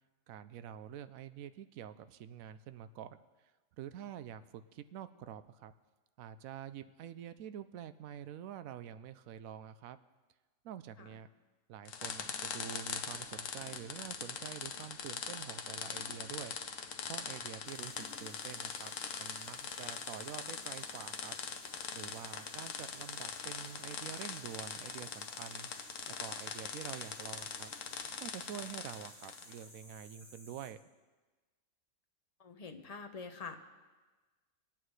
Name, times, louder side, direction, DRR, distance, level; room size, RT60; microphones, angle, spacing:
voice 1, 0.3-3.2 3.8-5.7 6.2-10.0 10.6-11.3 11.7-16.6 17.1-21.4 21.9-25.7 26.1-27.7 28.2-30.8, right 9 dB, 90° right, 13 dB, 1.0 m, -47 dB
sound 1, 11.9-29.6, left 6 dB, 70° left, 1.1 m, -42 dB
sound 2, 17.6-30.7, equal, 10° left, 2.7 m, -56 dB
voice 2, 32.4-33.6, left 5 dB, 35° left, 4 dB, 0.8 m, -46 dB
21.0 x 8.9 x 3.2 m, 1.3 s
omnidirectional pair, 1.4 m